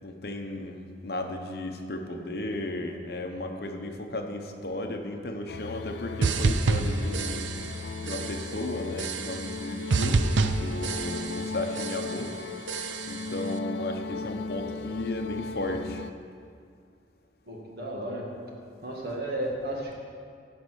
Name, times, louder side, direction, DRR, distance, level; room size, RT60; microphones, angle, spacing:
voice 1, 0.0-7.5 8.0-10.2 10.6-12.3 13.1-16.0, left 1 dB, 55° left, 4 dB, 0.9 m, -34 dB
sound 1, 5.5-16.1, left 4 dB, 75° left, 0.4 m, -37 dB
sound 2, 6.2-7.8 8.1-8.6 9.0-9.6 9.9-11.5 11.8-12.3 12.7-13.3, right 3 dB, 80° right, 0.5 m, -28 dB
voice 2, 17.5-18.3 18.8-19.9, right 1 dB, 55° right, -2 dB, 2.1 m, -33 dB
16.0 x 5.4 x 6.3 m, 2.3 s
head